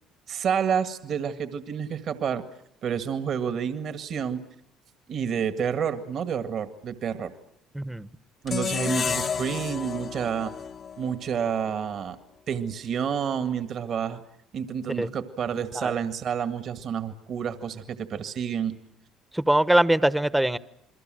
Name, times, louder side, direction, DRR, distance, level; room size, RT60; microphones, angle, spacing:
voice 1, 0.3-2.4 2.8-4.4 5.1-7.3 8.4-10.5 11.0-12.2 12.5-14.2 14.5-18.8, right 7 dB, 55° right, 1.9 m, -29 dB
voice 2, 7.7-8.1 15.0-15.1 15.7-15.9 19.3-20.6, right 1 dB, 10° right, 1.1 m, -22 dB
sound 1, 8.5-11.7, left 6 dB, 45° left, 1.2 m, -31 dB
29.0 x 22.0 x 7.7 m
supercardioid pair, 70°, 0 cm